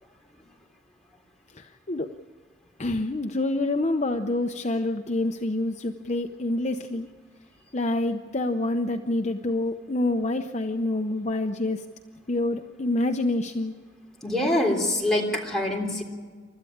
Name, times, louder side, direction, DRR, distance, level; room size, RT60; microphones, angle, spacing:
voice 1, 1.5-2.1 2.8-7.1 7.7-11.9 12.3-13.7, left 2 dB, 35° left, 5 dB, 0.7 m, -27 dB
voice 2, 14.2-16.0, left 1 dB, ahead, -2 dB, 3.5 m, -25 dB
29.0 x 13.5 x 8.7 m, 1.5 s
head